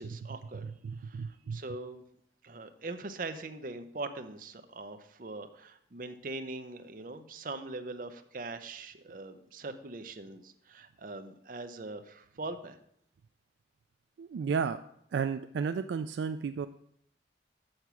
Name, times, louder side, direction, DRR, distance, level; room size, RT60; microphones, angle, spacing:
voice 1, 0.0-0.6 1.0-2.0 2.4-12.8, right 2 dB, 50° right, 8 dB, 0.7 m, -42 dB
voice 2, 0.6-1.6 14.2-14.8 15.1-16.7, right 6 dB, 80° right, 9 dB, 0.3 m, -33 dB
6.8 x 6.6 x 5.9 m, 0.71 s
head